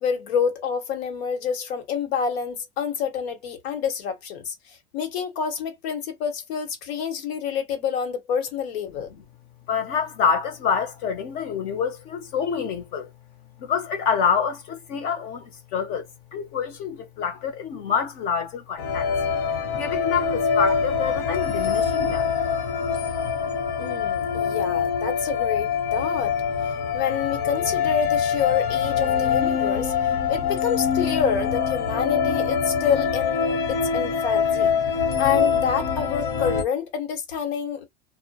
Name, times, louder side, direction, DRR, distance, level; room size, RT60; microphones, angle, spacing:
voice 1, 0.0-9.1 23.8-26.4 26.6-34.7 35.2-37.8, left 7 dB, 80° left, 1.0 m, -28 dB
voice 2, 9.7-13.1 13.6-19.1 19.7-22.3 23.3-23.4, left 6 dB, 30° left, 0.5 m, -27 dB
sound 1, 18.8-36.6, left 6 dB, 60° left, 0.9 m, -24 dB
2.3 x 2.1 x 2.7 m
supercardioid pair, 175°, 30 cm